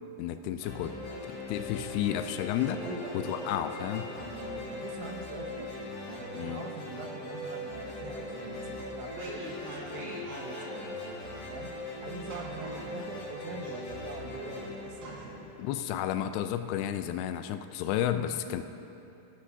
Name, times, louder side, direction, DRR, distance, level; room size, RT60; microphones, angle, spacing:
voice 1, 0.2-1.0 1.3-2.8 3.1-4.0 6.4-6.6 15.6-18.6, left 11 dB, 85° left, 9 dB, 2.3 m, -32 dB
sound 1, 0.6-15.8, left 2 dB, 70° left, 4.4 m, -40 dB
voice 2, 2.8-5.8 6.1-9.5 9.7-15.5 18.4-18.6, right 4 dB, 80° right, 1 dB, 3.6 m, -44 dB
sound 2, 9.1-10.9 11.2-11.3 12.3-13.2 13.6-14.3 14.6-14.7 15.0-15.5 15.9-16.0, right 2 dB, 65° right, 4.9 m, -43 dB
29.5 x 11.5 x 2.7 m, 3.0 s
omnidirectional pair, 5.2 m